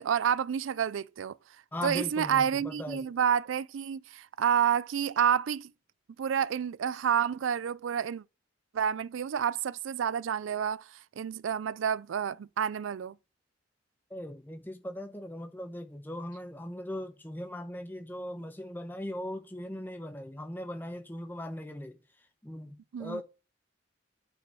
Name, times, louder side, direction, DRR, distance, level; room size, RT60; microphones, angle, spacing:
voice 1, 0.0-1.4 1.8-5.7 6.2-8.2 8.7-10.8 11.2-13.2 22.9-23.2, right 8 dB, 85° right, 0.4 m, -29 dB
voice 2, 1.7-3.1 14.1-22.0 22.4-23.2, left 1 dB, 10° left, 0.9 m, -39 dB
8.8 x 5.5 x 5.4 m
head